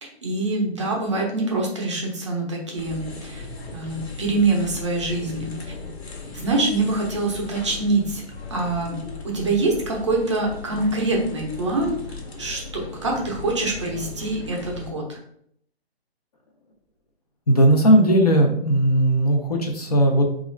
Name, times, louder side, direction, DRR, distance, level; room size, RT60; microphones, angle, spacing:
voice 1, 0.0-3.5 3.7-5.5 6.3-8.2 8.5-12.0 12.4-15.2, right 2 dB, 30° right, -1 dB, 0.5 m, -25 dB
sound 1, 2.8-14.9, left 3 dB, 70° left, 1.0 m, -37 dB
voice 2, 17.5-20.3, right 1 dB, 40° left, 1 dB, 0.4 m, -17 dB
3.0 x 2.4 x 3.0 m, 0.67 s
hypercardioid pair, 165°, 32 cm